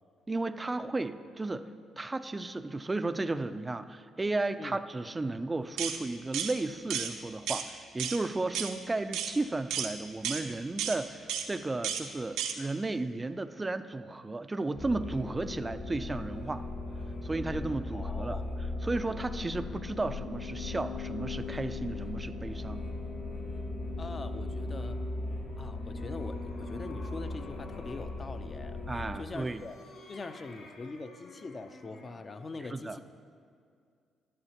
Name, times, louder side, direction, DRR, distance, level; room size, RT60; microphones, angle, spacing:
voice 1, 0.3-1.7 2.0-16.6 17.2-18.4 18.8-22.8 28.9-29.6 32.7-33.0, right 2 dB, 25° right, 11 dB, 0.4 m, -34 dB
sound 1, 5.8-6.0 6.3-6.5 6.9-7.1 7.5-7.7 8.0-8.2 8.5-8.7 9.1-9.3 9.7-9.9 10.2-10.4 10.8-11.0 11.3-11.5 11.8-12.0 12.4-12.5, right 8 dB, 85° right, 0.6 m, -32 dB
sound 2, 14.7-29.1, left 2 dB, 60° left, 2.6 m, -38 dB
voice 2, 17.9-18.5 24.0-25.0 25.6-28.8 29.1-29.7 30.1-33.0, left 3 dB, 35° left, 9 dB, 0.6 m, -43 dB
sound 3, 25.2-28.2 29.1-32.3, left 2 dB, 75° left, 1.3 m, -53 dB
11.5 x 11.0 x 2.9 m, 2.2 s
supercardioid pair, 65°, 0 cm